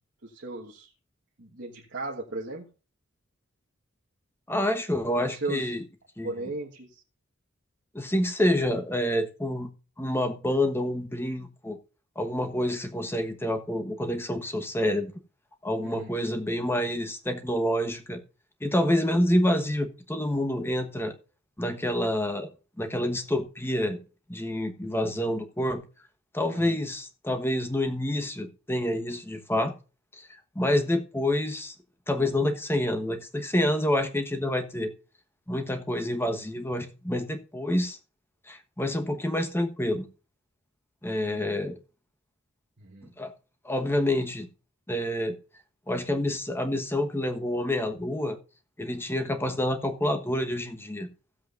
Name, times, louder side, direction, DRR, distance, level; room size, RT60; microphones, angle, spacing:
voice 1, 0.2-0.9 1.4-2.7 5.1-5.7 6.2-7.0 15.8-16.1 26.5-26.8 41.2-41.5 42.8-43.1, right 2 dB, 55° right, 1.5 m, -37 dB
voice 2, 4.5-5.8 6.2-6.3 7.9-9.7 10.0-11.8 12.2-15.1 15.6-18.2 18.6-21.1 21.6-22.5 22.8-24.0 24.3-25.8 26.3-29.7 30.2-30.3 30.5-31.7 32.1-34.9 35.5-38.0 38.5-40.1 41.0-41.8 43.2-43.3 43.6-44.5 44.9-45.4 45.9-48.4 48.8-51.1, left 1 dB, 10° left, 1.2 m, -27 dB
16.5 x 7.6 x 2.5 m
head